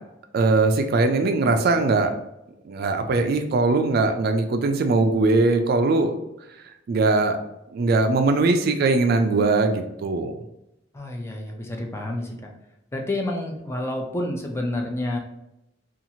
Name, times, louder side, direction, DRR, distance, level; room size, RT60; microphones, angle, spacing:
voice 1, 0.3-2.1 2.7-6.1 6.9-7.4 7.7-10.3, right 3 dB, 55° right, 6 dB, 0.3 m, -20 dB
voice 2, 10.9-12.3 12.9-15.2, left 1 dB, 15° left, 1 dB, 0.4 m, -29 dB
2.9 x 2.4 x 2.6 m, 0.87 s
head